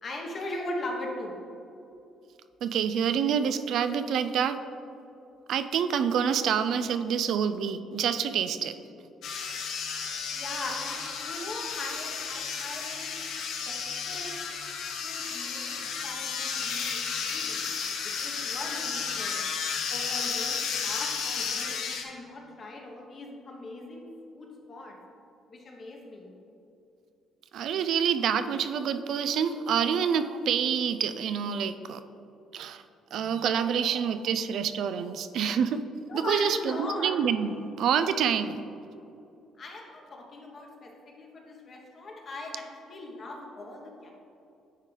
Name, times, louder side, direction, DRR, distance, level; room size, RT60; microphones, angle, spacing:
voice 1, 0.0-1.3 10.3-13.1 13.7-13.8 14.1-14.4 15.0-19.5 19.9-24.9 25.5-26.3 36.1-37.2 39.6-44.1, left 2 dB, 45° left, 0 dB, 1.1 m, -39 dB
voice 2, 2.6-4.6 5.5-8.7 27.5-32.0 32.5-32.8 33.1-35.8 36.1-38.7, right 7 dB, 70° right, 11 dB, 0.3 m, -27 dB
sound 1, 9.2-22.0, left 6 dB, 75° left, 0.7 m, -33 dB
9.6 x 3.7 x 3.3 m, 2.7 s
cardioid pair, 105°, 0 cm